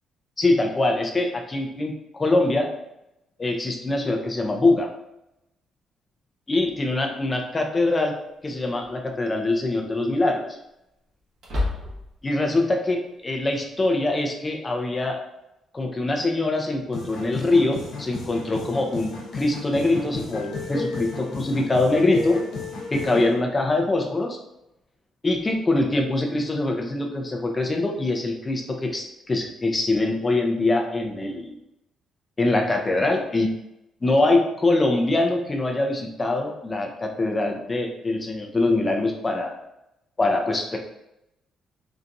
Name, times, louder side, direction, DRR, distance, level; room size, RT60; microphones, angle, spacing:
voice 1, 0.4-2.7 3.4-4.9 6.5-8.1 8.4-10.6 12.2-15.2 15.7-22.4 22.9-24.4 25.2-31.6 32.4-33.5 34.0-39.5 40.2-40.8, left 2 dB, 20° left, 2 dB, 0.4 m, -23 dB
sound 1, 6.8-6.9 8.7-9.1 9.5-9.6 11.4-12.3, left 2 dB, 55° right, 1.1 m, -29 dB
sound 2, 16.9-23.3, left 3 dB, 75° left, 0.8 m, -34 dB
3.9 x 2.3 x 2.6 m, 0.86 s
cardioid pair, 160°, 0 cm